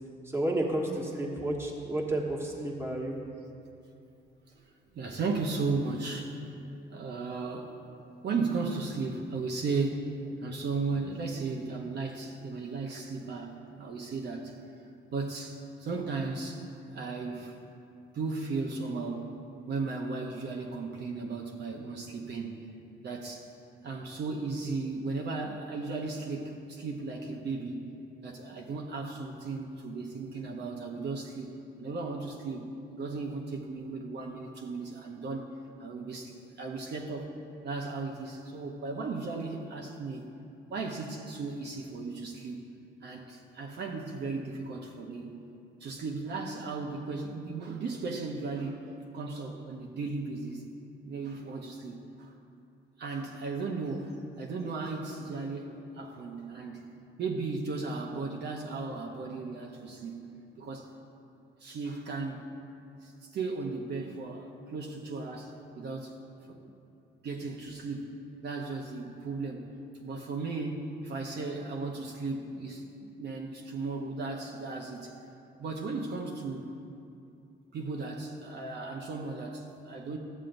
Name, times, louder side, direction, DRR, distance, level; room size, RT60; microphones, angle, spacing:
voice 1, 0.3-3.1, right 1 dB, 10° right, -1 dB, 1.2 m, -31 dB
voice 2, 4.9-6.4 6.9-7.7 8.2-10.1 10.4-14.6 15.1-16.6 16.9-17.6 18.1-19.3 19.7-22.6 23.0-23.5 23.8-27.9 28.2-35.4 35.8-37.3 37.6-40.2 40.7-42.6 43.0-45.4 45.8-48.8 49.1-50.6 51.0-52.3 53.0-56.8 57.2-60.2 60.6-60.9 61.6-62.5 63.0-66.2 66.5-66.7 67.2-68.2 68.4-69.7 70.0-75.2 75.6-76.7 77.7-80.2, right 3 dB, 60° right, 0 dB, 0.8 m, -36 dB
13.0 x 7.3 x 2.6 m, 2.6 s
cardioid pair, 90°, 20 cm